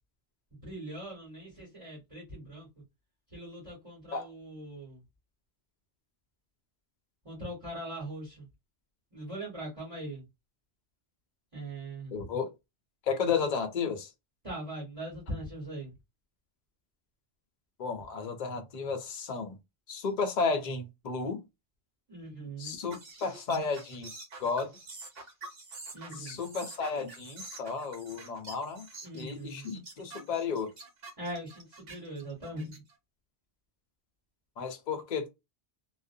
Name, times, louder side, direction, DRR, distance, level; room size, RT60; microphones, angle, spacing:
voice 1, 0.5-2.7 3.3-5.0 7.2-8.5 9.1-10.2 11.5-12.2 14.4-15.9 22.1-22.8 25.9-26.4 29.0-29.6 31.2-32.8, right 1 dB, 30° right, 1.2 m, -41 dB
voice 2, 12.1-12.5 13.1-14.1 17.8-19.6 19.9-21.4 22.6-24.1 24.4-24.7 26.2-28.9 29.1-30.7 34.6-35.3, left 5 dB, 50° left, 0.6 m, -33 dB
sound 1, 22.9-32.9, right 3 dB, 60° right, 1.0 m, -47 dB
2.5 x 2.1 x 2.5 m
omnidirectional pair, 1.2 m